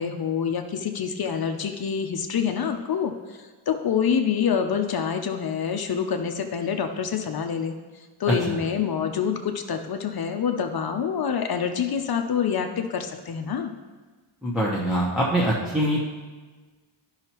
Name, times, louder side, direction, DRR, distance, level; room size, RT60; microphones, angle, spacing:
voice 1, 0.0-7.7 8.2-13.7, left 7 dB, 50° left, 5 dB, 0.6 m, -26 dB
voice 2, 14.4-16.0, right 1 dB, ahead, -7 dB, 0.9 m, -23 dB
12.0 x 5.6 x 3.0 m, 1.3 s
wide cardioid pair, 150°, 49 cm